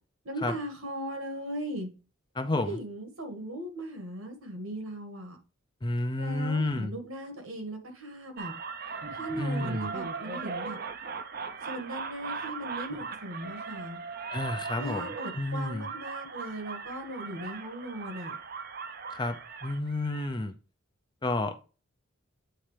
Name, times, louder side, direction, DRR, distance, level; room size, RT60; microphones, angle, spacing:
voice 1, 0.3-1.9 2.5-5.4 6.2-8.5 9.1-10.8 11.7-14.0 14.8-18.3, right 1 dB, 75° right, 1.9 m, -38 dB
voice 2, 2.3-2.8 5.8-7.0 9.4-9.9 14.3-15.9 19.1-20.5 21.2-21.7, left 2 dB, 20° left, 0.6 m, -31 dB
sound 1, 8.4-20.3, right 5 dB, 45° right, 0.6 m, -39 dB
8.9 x 4.2 x 3.3 m
head